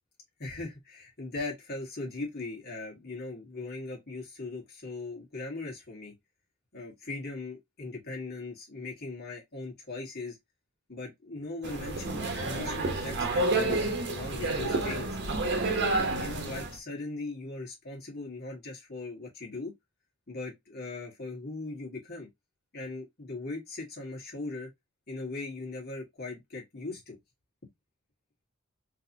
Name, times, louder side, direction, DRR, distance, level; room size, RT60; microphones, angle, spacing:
voice 1, 0.4-6.1 6.7-10.4 10.9-15.2 15.7-19.7 20.3-22.3 22.7-24.7 25.1-27.2, left 3 dB, 50° left, 1.6 m, -39 dB
sound 1, 11.6-16.8, right 2 dB, 55° right, 0.9 m, -29 dB
3.9 x 2.8 x 2.7 m
head